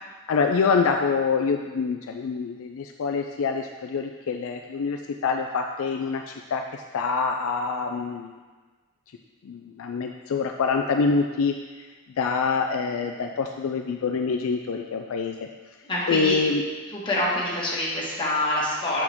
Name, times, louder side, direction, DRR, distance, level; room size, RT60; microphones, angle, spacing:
voice 1, 0.3-8.4 9.4-11.5 12.2-15.3 16.1-16.6, left 5 dB, 65° left, 3 dB, 0.4 m, -26 dB
voice 2, 15.8-16.4 16.9-19.0, left 1 dB, 20° left, -6 dB, 1.8 m, -26 dB
7.0 x 6.1 x 3.6 m, 1.4 s
head